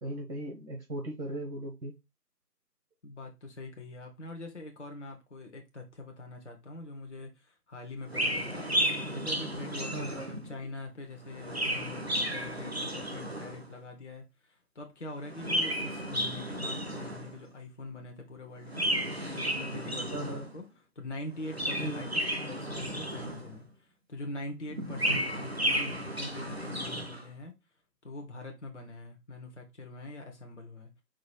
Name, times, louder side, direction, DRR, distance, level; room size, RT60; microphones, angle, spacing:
voice 1, 0.0-1.9 9.9-10.3 20.1-20.5 21.8-22.1, right 1 dB, 80° right, 1.8 m, -37 dB
voice 2, 3.0-8.7 9.1-18.9 19.3-20.6 20.9-22.1 22.4-27.5 28.0-30.9, left 2 dB, 45° left, 0.9 m, -43 dB
Chirp tweet, 8.1-10.6 11.2-13.7 15.2-17.4 18.7-20.6 21.3-23.6 24.7-27.2, equal, 40° right, 0.6 m, -33 dB
4.9 x 2.3 x 4.4 m
figure-of-eight pair, 165°, 49 cm